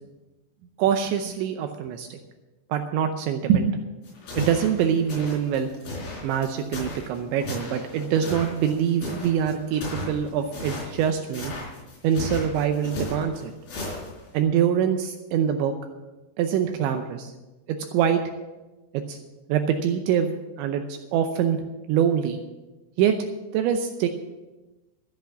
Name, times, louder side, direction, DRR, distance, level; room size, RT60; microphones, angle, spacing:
voice 1, 0.8-2.2 2.7-3.8 4.3-5.7 6.2-11.5 12.0-13.5 14.3-15.7 16.4-17.3 17.7-18.2 18.9-19.2 19.5-20.3 20.6-21.6 21.9-22.4 23.0-23.2 23.5-24.1, right 8 dB, 80° right, 6 dB, 3.0 m, -24 dB
sound 1, 4.0-14.4, left 2 dB, 50° left, 5.7 m, -35 dB
14.0 x 8.1 x 7.2 m, 1.1 s
omnidirectional pair, 5.5 m